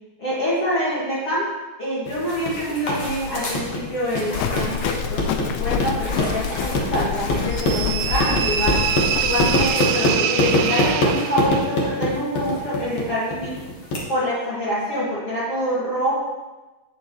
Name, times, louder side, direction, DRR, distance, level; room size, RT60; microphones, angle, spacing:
voice 1, 0.2-1.5 1.8-8.8 9.2-13.6 14.1-16.2, equal, 45° left, -10 dB, 2.3 m, -25 dB
sound 1, 2.1-14.0, left 1 dB, 65° left, 1.5 m, -25 dB
Livestock farm animals working animals, 4.3-9.7, left 7 dB, 90° left, 2.2 m, -27 dB
sound 2, 7.5-11.7, right 9 dB, 90° right, 2.9 m, -25 dB
9.2 x 8.3 x 3.1 m, 1.1 s
omnidirectional pair, 5.1 m